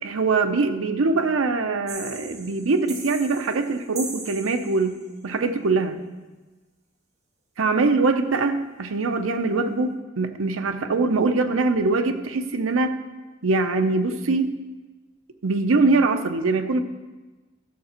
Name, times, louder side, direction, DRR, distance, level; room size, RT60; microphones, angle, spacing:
voice 1, 0.0-5.0 5.2-6.0 7.6-13.0 13.4-14.6 15.4-16.8, right 3 dB, 80° right, 8 dB, 0.7 m, -23 dB
sound 1, 1.9-5.1, right 3 dB, 35° right, 1.5 m, -39 dB
11.5 x 6.7 x 4.4 m, 1.2 s
head